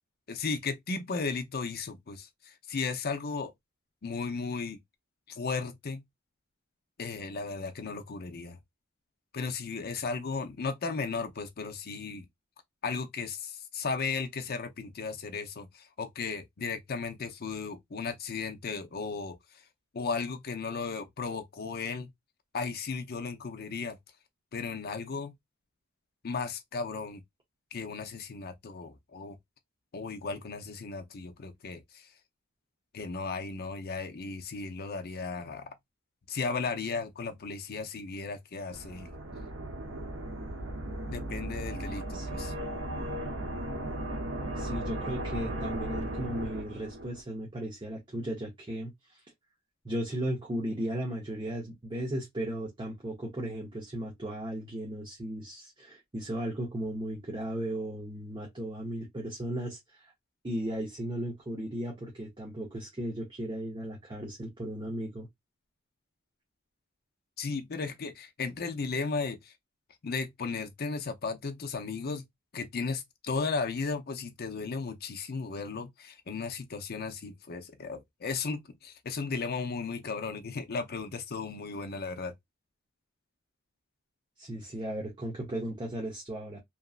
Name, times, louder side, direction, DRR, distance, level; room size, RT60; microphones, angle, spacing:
voice 1, 0.3-3.5 4.0-4.8 5.3-6.0 7.0-8.6 9.3-12.3 12.8-19.4 19.9-22.1 22.5-24.0 24.5-25.3 26.2-27.2 27.7-29.4 29.9-32.1 32.9-35.8 36.3-39.1 41.1-42.5 67.4-69.5 70.0-72.2 72.5-82.3, left 4 dB, 50° left, 0.6 m, -35 dB
sound 1, 38.7-47.2, right 1 dB, 70° right, 0.8 m, -36 dB
voice 2, 42.1-42.6 44.6-49.2 49.8-60.1 60.4-65.3 84.4-86.6, right 1 dB, 25° right, 0.8 m, -36 dB
2.9 x 2.5 x 2.4 m
head